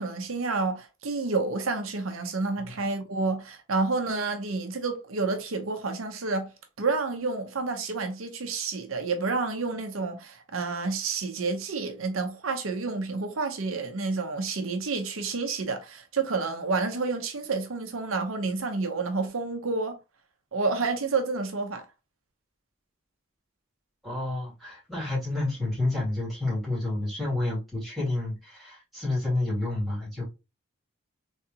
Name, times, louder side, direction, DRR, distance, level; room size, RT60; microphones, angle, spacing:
voice 1, 0.0-6.5 6.8-20.0 20.5-21.9, right 3 dB, 75° right, 0.7 m, -29 dB
voice 2, 24.0-30.2, left 2 dB, ahead, 2.4 m, -29 dB
3.8 x 3.1 x 2.8 m
head